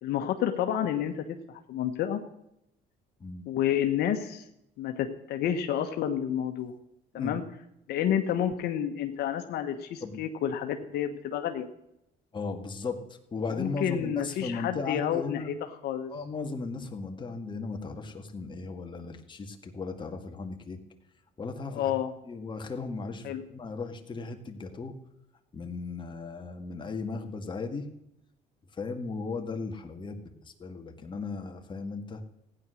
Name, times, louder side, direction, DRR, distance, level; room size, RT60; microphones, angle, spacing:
voice 1, 0.0-2.2 3.5-4.4 4.8-6.7 7.1-7.4 7.9-11.7 13.5-15.5 15.8-16.1 21.7-22.1 23.2-23.4, left 9 dB, 75° left, 6 dB, 1.3 m, -30 dB
voice 2, 12.3-15.5 16.1-20.8 21.4-21.9 22.2-25.0 25.5-27.9 28.7-32.2, left 4 dB, 30° left, 4 dB, 1.9 m, -36 dB
15.5 x 9.8 x 6.4 m, 0.82 s
cardioid pair, 110°, 17 cm